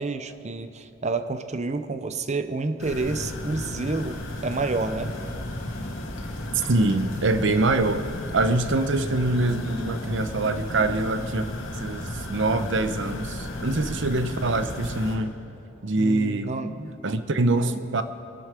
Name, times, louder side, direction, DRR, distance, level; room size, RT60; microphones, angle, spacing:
voice 1, 0.0-5.1 16.0-16.9, right 3 dB, 35° right, 10 dB, 0.7 m, -29 dB
sound 1, 2.8-15.2, left 1 dB, 80° left, 2.4 m, -34 dB
sound 2, 5.1-9.4, equal, 40° left, 3.2 m, -45 dB
voice 2, 6.7-8.0 8.3-11.5 11.8-15.3 15.8-16.5 17.0-18.0, right 2 dB, 65° right, 11 dB, 0.8 m, -24 dB
24.0 x 11.0 x 5.0 m, 2.6 s
head